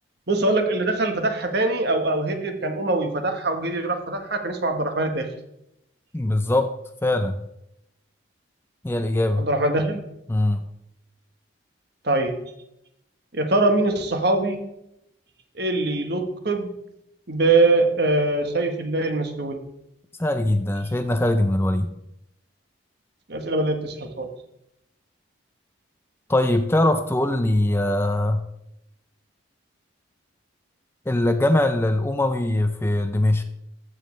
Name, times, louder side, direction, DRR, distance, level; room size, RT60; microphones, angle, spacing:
voice 1, 0.3-5.3 9.4-10.0 12.0-12.4 13.3-14.6 15.6-16.7 17.3-19.6 23.3-24.3, right 2 dB, 55° right, 6 dB, 1.2 m, -23 dB
voice 2, 6.1-7.4 8.8-9.5 10.3-10.6 20.2-21.9 26.3-28.4 31.1-33.4, left 1 dB, 10° left, 8 dB, 0.4 m, -22 dB
14.0 x 7.2 x 3.2 m, 0.82 s
head